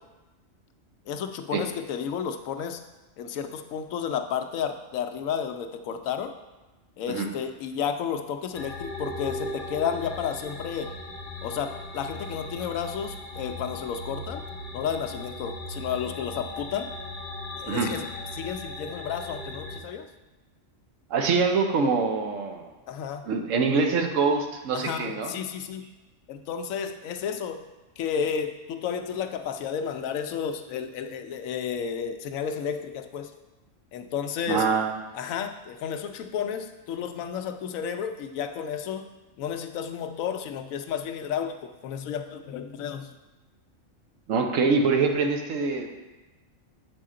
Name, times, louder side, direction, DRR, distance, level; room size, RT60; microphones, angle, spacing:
voice 1, 1.1-2.8 3.2-6.3 7.0-10.9 11.4-14.4 14.7-16.9 17.6-18.1 18.3-20.1 22.9-23.2 24.7-25.9 26.3-27.6 28.0-33.4 33.9-34.7 35.1-39.1 39.4-43.1, left 7 dB, 80° left, 7 dB, 1.0 m, -32 dB
sound 1, 8.5-19.8, left 2 dB, 50° left, 1.0 m, -38 dB
voice 2, 21.1-22.7 23.2-25.3 34.5-35.0 44.3-45.9, right 4 dB, 75° right, 3 dB, 1.1 m, -24 dB
7.6 x 5.0 x 3.7 m, 1.1 s
omnidirectional pair, 1.4 m